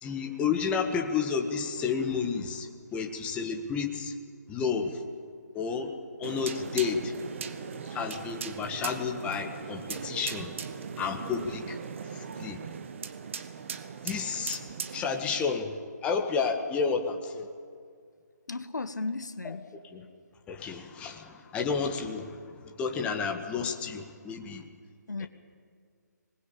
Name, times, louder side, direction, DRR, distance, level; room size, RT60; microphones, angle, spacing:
voice 1, 0.0-4.1 4.5-5.0 5.5-5.9 6.2-7.1 7.9-10.5 11.0-11.8 12.1-12.6 14.0-14.6 14.9-17.5 19.8-20.1 20.5-24.6 25.2-25.3, left 5 dB, 10° left, 3 dB, 1.7 m, -31 dB
sound 1, 6.2-15.4, right 6 dB, 40° right, 1.5 m, -39 dB
voice 2, 18.5-19.6 25.1-25.3, left 3 dB, 70° left, 11 dB, 1.3 m, -35 dB
26.5 x 20.0 x 8.7 m, 2.1 s
figure-of-eight pair, 140°, 10 cm